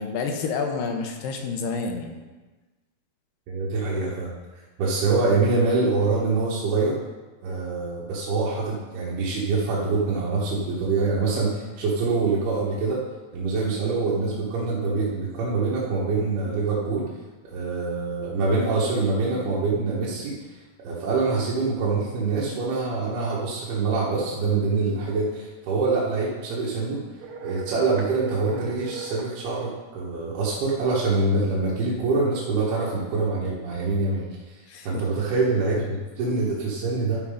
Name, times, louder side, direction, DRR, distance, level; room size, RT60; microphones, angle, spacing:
voice 1, 0.0-2.2 34.7-35.3, left 4 dB, 75° left, 3 dB, 2.5 m, -29 dB
voice 2, 3.5-4.3 4.8-7.0 7.4-13.0 13.3-17.1 17.4-20.4 20.8-27.0 27.4-34.3 34.5-37.2, right 3 dB, 85° right, -6 dB, 3.4 m, -25 dB
sound 1, 27.2-29.3, right 5 dB, 70° right, 2.1 m, -36 dB
12.0 x 5.7 x 5.0 m, 1.2 s
omnidirectional pair, 4.4 m